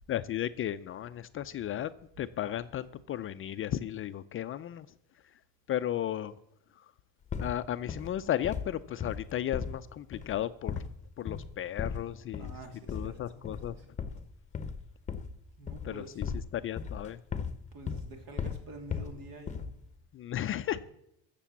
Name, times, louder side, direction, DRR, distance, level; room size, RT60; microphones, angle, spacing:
voice 1, 0.1-1.9 2.2-4.9 5.7-6.4 7.4-10.8 11.2-12.5 12.9-13.8 15.8-16.3 16.5-17.2 20.1-20.8, left 11 dB, 35° left, 12 dB, 0.4 m, -34 dB
sound 1, 7.3-7.6 7.9-8.2 8.4-8.7 9.0-9.8 10.1-10.4 10.7-11.0 11.3-11.5 11.8-12.1 12.3-12.6 12.9-13.2 13.4-13.7 14.0-15.4 15.7-16.5 16.8-17.6 17.9-18.1 18.4-19.2 19.5-19.8, left 6 dB, 20° left, 0.8 m, -36 dB
voice 2, 12.4-13.4 13.7-13.9 15.6-16.2 17.0-17.1 17.7-19.7, right 1 dB, 60° right, 4 dB, 3.1 m, -48 dB
14.5 x 6.8 x 7.2 m, 0.78 s
cardioid pair, 135°, 38 cm